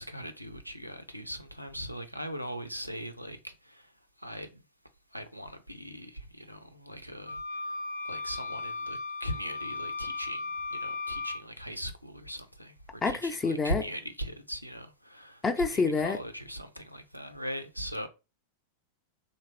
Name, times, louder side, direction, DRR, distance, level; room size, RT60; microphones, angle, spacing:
voice 1, 0.0-3.9 4.2-4.6 5.1-7.4 8.1-10.4 10.7-12.7 13.1-18.1, equal, 90° right, 0.4 m, -39 dB
sound 1, 7.3-11.4, left 3 dB, 70° left, 0.8 m, -36 dB
voice 2, 13.0-13.8 15.4-16.2, left 4 dB, 20° left, 0.5 m, -27 dB
3.1 x 2.5 x 2.9 m
figure-of-eight pair, 90°, 0 cm